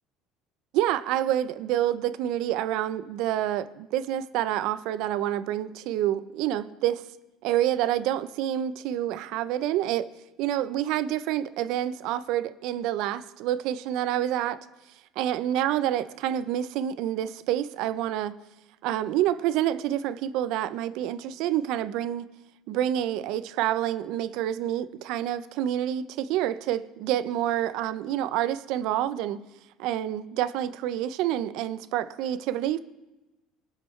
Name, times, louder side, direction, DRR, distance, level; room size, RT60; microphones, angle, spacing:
voice 1, 0.7-7.0 7.4-10.1 10.4-14.6 15.2-18.3 18.8-22.2 22.7-29.4 29.8-32.8, right 12 dB, 70° right, 14 dB, 0.6 m, -28 dB
20.0 x 7.4 x 3.3 m, 1.0 s
supercardioid pair, 85°, 0 cm